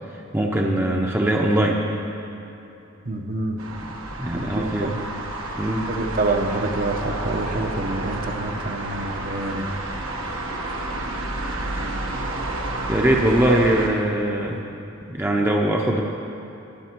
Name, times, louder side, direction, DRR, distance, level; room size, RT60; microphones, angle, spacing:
voice 1, 0.3-1.8 4.2-4.9 5.6-5.9 12.9-14.6 15.1-16.0, right 1 dB, 10° right, -1 dB, 0.7 m, -21 dB
voice 2, 3.0-3.6 4.5-5.0 5.9-9.7, right 2 dB, 45° right, 5 dB, 0.9 m, -27 dB
sound 1, 3.6-13.9, right 2 dB, 75° right, 1.4 m, -30 dB
20.5 x 7.9 x 4.6 m, 3.0 s
head